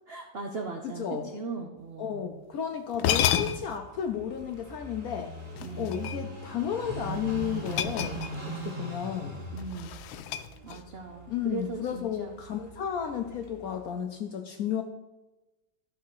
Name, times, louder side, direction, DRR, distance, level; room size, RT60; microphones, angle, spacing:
voice 1, 0.1-2.2 5.6-6.0 9.5-10.0 10.6-12.3, right 4 dB, 75° right, 3 dB, 0.5 m, -38 dB
voice 2, 0.8-1.3 2.0-5.3 5.8-9.4 11.3-14.8, left 8 dB, 70° left, 5 dB, 0.8 m, -33 dB
sound 1, 2.5-2.6 2.9-3.8 5.6-6.5 7.6-8.6 8.9-9.1 9.6-11.0, left 10 dB, 85° left, 1.3 m, -30 dB
Car passing by / Idling, 3.2-13.8, right 2 dB, 25° right, 2.3 m, -41 dB
Dog, 5.3-12.0, right 4 dB, 45° right, 1.7 m, -53 dB
12.0 x 4.1 x 6.1 m, 1.1 s
omnidirectional pair, 2.1 m